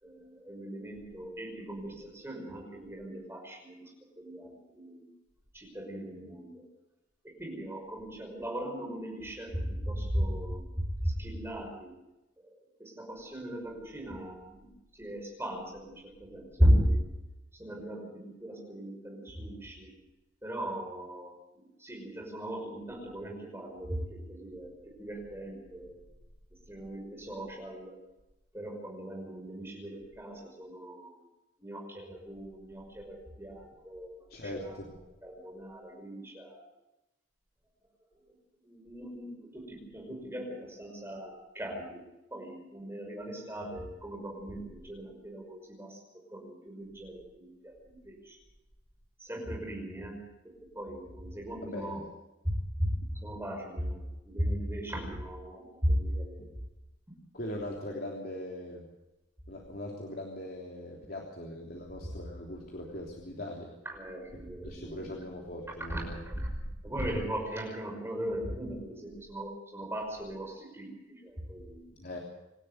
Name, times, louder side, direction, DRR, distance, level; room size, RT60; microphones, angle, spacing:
voice 1, 0.0-3.9 4.2-5.1 5.5-6.6 7.2-10.7 11.0-11.9 12.4-17.0 17.5-19.9 20.4-26.0 26.7-28.0 28.5-31.2 31.6-34.8 35.2-36.7 38.3-38.4 38.6-42.0 42.3-46.0 46.3-48.4 49.2-52.0 52.4-56.5 63.9-65.0 65.9-66.6 66.8-71.8, equal, 15° right, 0 dB, 5.7 m, -36 dB
voice 2, 34.3-34.9 51.6-52.0 57.3-58.9 59.5-63.7 64.6-66.2 72.0-72.2, left 1 dB, 50° left, -1 dB, 3.3 m, -40 dB
27.0 x 12.5 x 8.2 m, 0.96 s
head